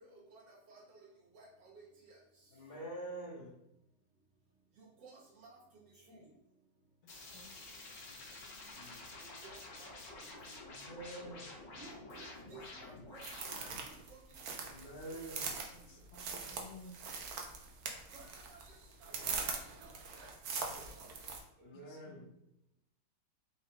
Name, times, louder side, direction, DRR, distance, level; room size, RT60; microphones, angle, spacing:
voice 1, 0.3-1.1 1.3-1.7 2.1-2.2 4.8-5.6 6.1-6.2 9.2-9.9 10.5-10.6 11.8-13.2 13.6-13.7 14.1-14.2 18.1-18.6 19.0-19.5 19.8-19.9 20.2-20.3 20.5-21.1, right 3 dB, 85° right, -3 dB, 1.9 m, -56 dB
voice 2, 2.5-3.5 6.0-6.2 8.1-8.2 8.7-9.0 10.7-11.5 14.7-15.6 19.0-19.4 21.6-22.2, right 1 dB, 30° left, -8 dB, 0.9 m, -47 dB
voice 3, 7.0-7.6 11.8-11.9 15.7-17.1 21.7-22.3, left 1 dB, 55° left, 2 dB, 0.7 m, -56 dB
sound 1, 7.1-13.8, left 2 dB, 85° left, 1.6 m, -50 dB
sound 2, 13.2-21.4, right 5 dB, 65° right, 1.1 m, -42 dB
4.4 x 2.3 x 4.6 m, 0.81 s
omnidirectional pair, 1.9 m